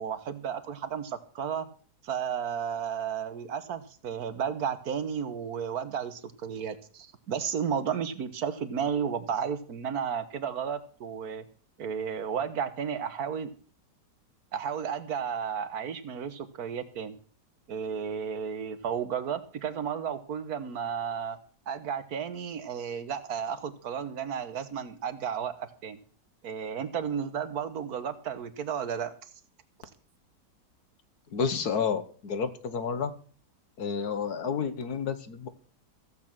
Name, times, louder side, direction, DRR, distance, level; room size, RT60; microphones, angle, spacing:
voice 1, 0.0-1.7 2.0-11.4 11.8-13.5 14.5-17.2 17.7-21.4 21.7-26.0 26.4-29.1, right 7 dB, 60° right, 13 dB, 1.6 m, -33 dB
voice 2, 31.3-33.1 33.8-35.5, left 6 dB, 60° left, 11 dB, 1.6 m, -30 dB
15.5 x 8.5 x 6.0 m, 0.44 s
omnidirectional pair, 1.9 m